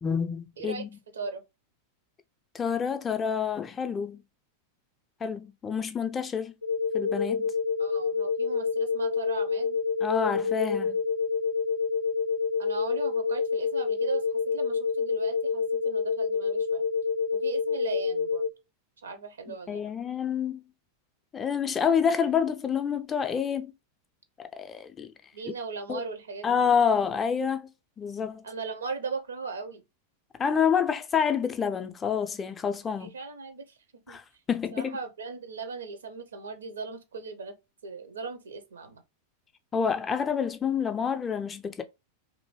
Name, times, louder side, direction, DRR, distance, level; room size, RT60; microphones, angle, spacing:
voice 1, 0.0-0.9 2.5-4.2 5.2-6.5 6.9-7.5 10.0-11.0 19.5-20.6 21.3-23.7 24.4-25.1 25.9-26.0 26.4-27.7 28.0-28.4 30.4-33.1 34.1-35.0 39.7-41.8, left 7 dB, 20° left, 0.4 m, -28 dB
sound 1, 6.6-18.5, left 5 dB, 80° left, 0.5 m, -28 dB
voice 2, 7.8-9.8 12.6-16.8 17.3-18.5 19.0-19.9 25.3-26.7 28.4-29.8 32.9-33.8 34.1-34.2 34.7-37.5 37.8-39.0, right 4 dB, 70° right, 0.6 m, -38 dB
2.6 x 2.6 x 3.0 m
figure-of-eight pair, 90°, 0 cm